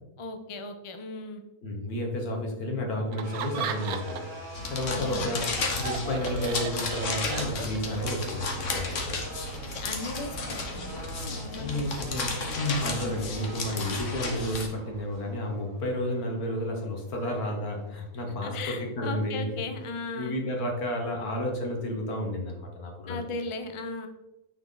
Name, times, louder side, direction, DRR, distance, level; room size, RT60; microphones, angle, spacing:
voice 1, 0.2-1.4 4.9-5.4 9.7-11.9 12.2-12.5 12.9-13.2 18.4-20.4 23.1-24.1, left 3 dB, 40° left, 6 dB, 0.4 m, -37 dB
voice 2, 1.6-4.3 4.7-9.0 11.6-19.5 20.2-23.2, left 1 dB, 75° left, 2 dB, 1.9 m, -31 dB
Laughter, 3.1-4.4 4.8-8.0, right 8 dB, 75° right, 1.1 m, -36 dB
sound 1, 3.2-18.1, right 1 dB, 25° right, 2.7 m, -45 dB
sound 2, 4.5-14.7, left 3 dB, 55° left, 1.4 m, -33 dB
9.2 x 4.6 x 3.9 m, 1.0 s
omnidirectional pair, 1.6 m